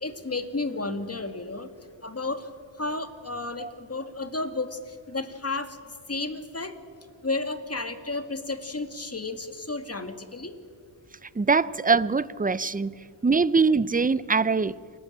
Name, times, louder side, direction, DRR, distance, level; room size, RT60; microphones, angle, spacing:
voice 1, 0.0-1.7 2.0-2.5 2.8-5.8 6.1-6.8 7.2-10.6, left 3 dB, 30° left, 2.2 m, -32 dB
voice 2, 11.4-12.9 13.2-14.8, right 4 dB, 15° right, 0.6 m, -22 dB
28.5 x 19.0 x 8.7 m
wide cardioid pair, 75°, 50 cm